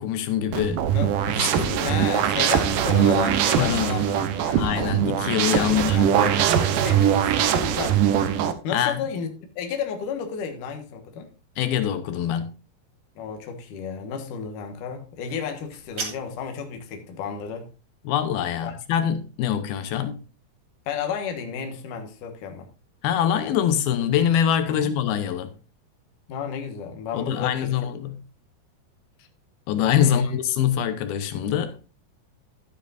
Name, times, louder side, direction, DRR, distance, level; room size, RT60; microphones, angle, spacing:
voice 1, 0.0-0.8 1.4-2.0 3.6-4.2 4.6-6.2 8.7-9.0 11.6-12.5 18.0-20.2 23.0-25.5 27.1-28.2 29.7-31.8, left 9 dB, 80° left, 2.8 m, -24 dB
sound 1, 0.5-8.5, right 9 dB, 70° right, 2.3 m, -22 dB
voice 2, 0.9-4.1 4.4-4.6 5.5-8.0 8.6-11.3 13.2-17.7 18.6-18.8 20.9-22.7 24.7-24.9 26.3-27.7 30.0-30.3, left 6 dB, 65° left, 2.8 m, -32 dB
sound 2, 15.5-16.6, right 4 dB, 40° right, 2.6 m, -36 dB
12.0 x 10.0 x 2.5 m
omnidirectional pair, 4.3 m